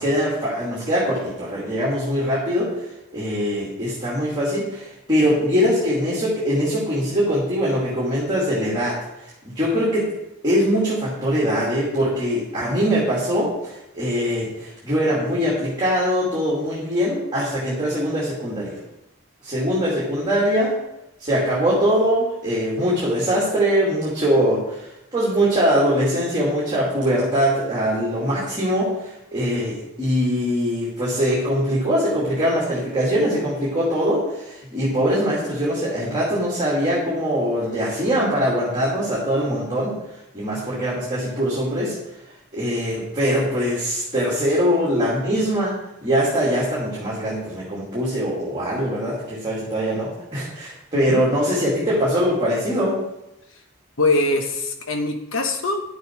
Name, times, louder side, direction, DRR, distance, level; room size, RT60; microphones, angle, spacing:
voice 1, 0.0-2.7 3.1-10.1 10.4-18.8 19.4-20.7 21.2-40.0 40.3-41.9 42.5-45.7 46.0-53.0, equal, 20° right, -7 dB, 2.5 m, -22 dB
voice 2, 54.0-55.8, left 2 dB, 65° left, 4 dB, 1.1 m, -22 dB
10.5 x 7.2 x 4.6 m, 0.89 s
head